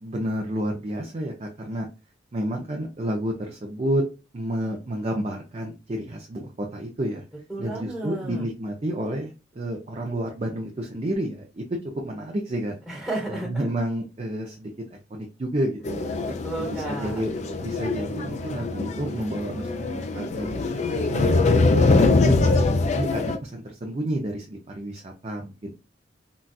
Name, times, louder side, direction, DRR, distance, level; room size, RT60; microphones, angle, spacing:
voice 1, 0.0-1.9 2.3-4.1 4.3-7.2 7.6-11.7 12.0-12.8 13.3-16.1 16.6-17.3 17.6-20.6 20.9-21.4 21.8-25.7, right 1 dB, 35° right, 1 dB, 0.5 m, -30 dB
voice 2, 7.5-8.5 12.9-13.7 16.3-17.2, right 2 dB, 5° right, -4 dB, 1.0 m, -32 dB
sound 1, 15.8-23.4, left 3 dB, 40° left, 0.4 m, -23 dB
3.9 x 2.3 x 2.3 m, 0.29 s
head